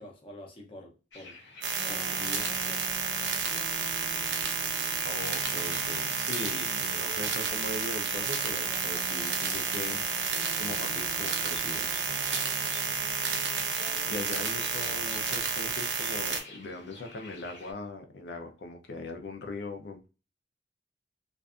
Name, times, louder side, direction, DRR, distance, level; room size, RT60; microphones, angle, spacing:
voice 1, 0.0-1.4 1.9-2.9, left 1 dB, 30° left, 0.6 m, -46 dB
sound 1, 1.1-17.7, left 2 dB, 85° left, 1.0 m, -50 dB
sound 2, 1.6-16.4, right 5 dB, 75° right, 0.5 m, -31 dB
sound 3, 1.7-15.4, equal, 15° right, 0.7 m, -47 dB
voice 2, 5.0-10.3 10.6-12.1 14.0-20.1, left 2 dB, 70° left, 0.5 m, -40 dB
2.5 x 2.3 x 2.4 m
head